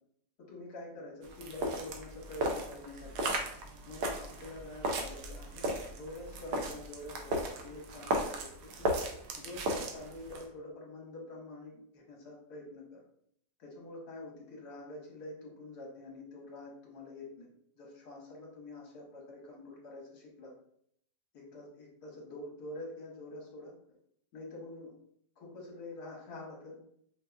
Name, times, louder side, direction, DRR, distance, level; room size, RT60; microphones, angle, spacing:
voice 1, 0.5-3.3 3.8-9.0 9.4-13.0 13.6-17.5 17.8-20.5 21.3-24.0 24.3-24.9 25.4-26.8, left 2 dB, 65° left, -2 dB, 1.5 m, -46 dB
sound 1, 1.2-10.4, right 1 dB, 75° right, 1.2 m, -36 dB
5.2 x 2.7 x 2.3 m, 0.70 s
omnidirectional pair, 2.0 m